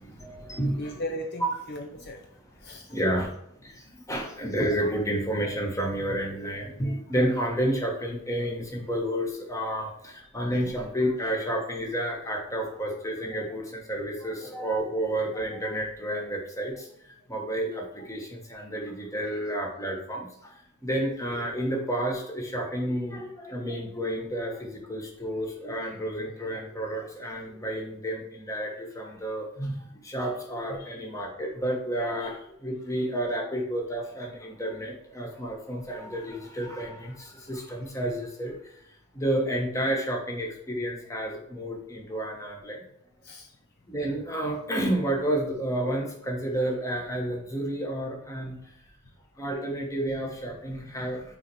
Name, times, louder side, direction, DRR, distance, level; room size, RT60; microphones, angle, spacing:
voice 1, 0.0-1.0 2.9-3.3 4.1-16.7 17.3-20.3 20.8-32.3 32.6-38.5 39.1-42.8 43.9-48.6 49.4-51.2, right 1 dB, 15° left, 0 dB, 1.2 m, -30 dB
voice 2, 0.8-2.2 2.6-2.9 19.2-19.4 32.2-32.3 43.2-43.5, left 1 dB, 50° left, 3 dB, 0.6 m, -37 dB
6.0 x 4.1 x 4.8 m, 0.72 s
head